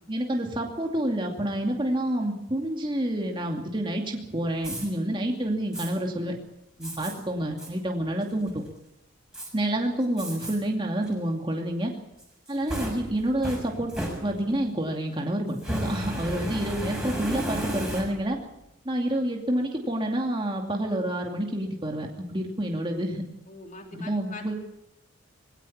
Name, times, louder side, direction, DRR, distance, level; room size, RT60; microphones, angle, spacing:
voice 1, 0.1-6.3 6.8-8.6 9.5-11.9 12.5-13.9 14.2-18.4 18.8-23.2 23.9-24.6, right 1 dB, 25° right, 1 dB, 2.5 m, -28 dB
Fire, 4.6-4.9 5.7-5.9 6.8-7.1 7.6-7.7 8.2-8.7 9.3-9.5 10.2-10.5 11.0-11.1 12.2-14.7 15.5-18.4, right 1 dB, 5° right, 6.8 m, -33 dB
voice 2, 23.5-24.6, left 3 dB, 40° left, 2 dB, 3.1 m, -43 dB
22.0 x 16.5 x 8.7 m, 0.86 s
head